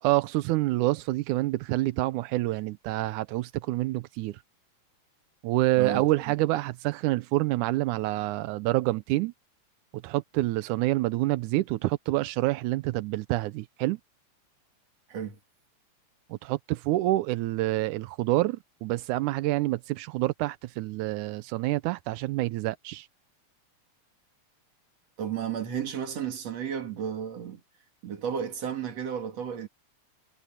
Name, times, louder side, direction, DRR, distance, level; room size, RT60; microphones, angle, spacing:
voice 1, 0.0-4.4 5.4-9.3 10.0-14.0 16.3-23.1, right 18 dB, 90° right, 2.2 m, -27 dB
voice 2, 5.8-6.1 15.1-15.4 25.2-27.6 28.0-29.7, right 8 dB, 60° right, 3.5 m, -33 dB
omnidirectional pair, 3.4 m